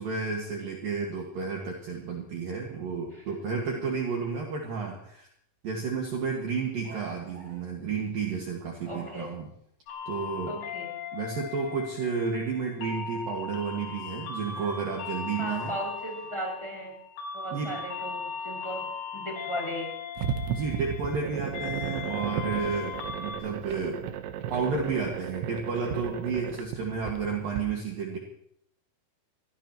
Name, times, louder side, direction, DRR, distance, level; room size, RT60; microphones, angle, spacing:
voice 1, 0.0-5.3 5.6-9.5 10.1-10.6 11.1-15.7 17.5-17.7 20.5-22.9 23.2-24.0 24.5-28.2, right 5 dB, 60° right, 0 dB, 3.1 m, -31 dB
voice 2, 3.1-3.5 8.9-9.3 10.5-10.9 15.4-16.9 17.3-18.9 19.1-19.9, equal, 5° left, -3 dB, 5.8 m, -36 dB
sound 1, 6.8-8.4 8.9-9.5 14.5-16.3, right 2 dB, 75° right, 9.8 m, -51 dB
sound 2, 9.9-23.4, left 6 dB, 75° left, 5.1 m, -38 dB
sound 3, 20.2-27.6, right 8 dB, 90° right, 3.6 m, -35 dB
24.0 x 17.5 x 3.1 m, 0.70 s
omnidirectional pair, 5.5 m